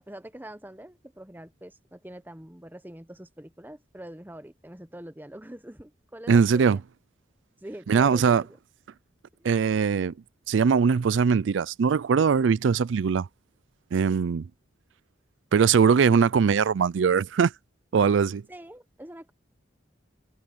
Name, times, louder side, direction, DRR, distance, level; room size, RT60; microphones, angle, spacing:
voice 1, 0.1-6.8 7.6-8.6 9.4-9.5 18.5-19.3, right 1 dB, 10° right, 1.0 m, -44 dB
voice 2, 6.3-6.8 7.9-8.4 9.4-10.1 10.5-13.3 13.9-14.5 15.5-17.5 17.9-18.4, right 6 dB, 90° right, 0.4 m, -21 dB
head